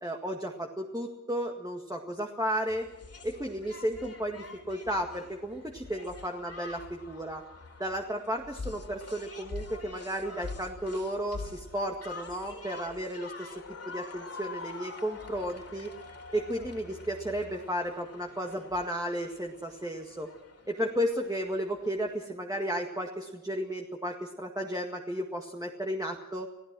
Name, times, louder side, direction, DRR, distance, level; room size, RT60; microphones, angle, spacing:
voice 1, 0.0-2.9 3.2-7.4 7.8-13.5 13.8-15.9 16.3-20.3 20.7-26.5, equal, 10° right, 1 dB, 1.9 m, -33 dB
sound 1, 2.7-22.3, left 4 dB, 45° left, 3.4 m, -46 dB
27.5 x 17.0 x 6.2 m, 1.0 s
wide cardioid pair, 110°, 33 cm